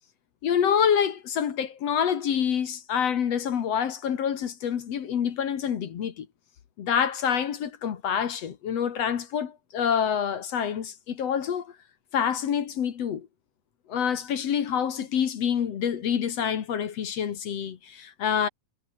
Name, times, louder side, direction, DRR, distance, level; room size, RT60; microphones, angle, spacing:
voice 1, 0.4-6.3 6.8-11.7 12.1-13.3 13.9-18.5, left 8 dB, 55° left, 2.5 m, -27 dB
omnidirectional pair, 3.7 m